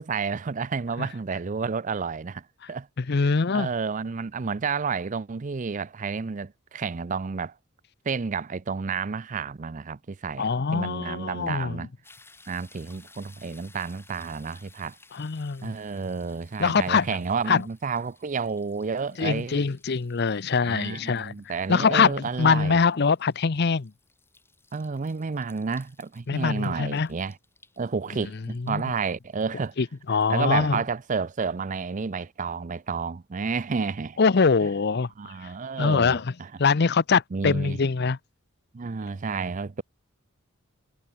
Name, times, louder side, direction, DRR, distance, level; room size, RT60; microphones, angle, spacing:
voice 1, 0.0-2.9 3.2-7.5 8.1-11.9 12.5-15.0 15.6-19.6 20.6-22.8 24.7-27.4 27.8-29.7 30.3-34.2 35.2-36.5 37.3-37.8 38.7-39.8, right 5 dB, 35° right, 0.5 m, -30 dB
voice 2, 3.0-3.7 10.4-11.8 15.1-15.7 16.6-17.2 17.5-17.6 19.2-21.3 21.7-23.9 26.3-27.1 28.5-28.8 29.8-30.8 34.2-35.1 35.8-36.3 36.6-38.2, left 5 dB, 50° left, 0.6 m, -23 dB
sound 1, 12.0-31.1 31.6-31.7, left 3 dB, 10° left, 7.0 m, -58 dB
head